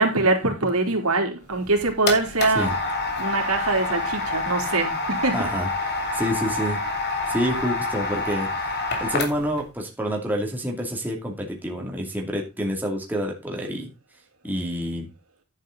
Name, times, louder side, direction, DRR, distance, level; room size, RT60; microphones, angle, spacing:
voice 1, 0.0-2.7 3.2-5.4, right 3 dB, 85° right, 3.5 m, -23 dB
sound 1, 1.5-9.6, left 2 dB, 50° left, 3.1 m, -27 dB
voice 2, 5.3-6.8 7.3-13.9 14.4-15.1, equal, 10° right, 2.5 m, -28 dB
10.5 x 9.4 x 3.9 m
head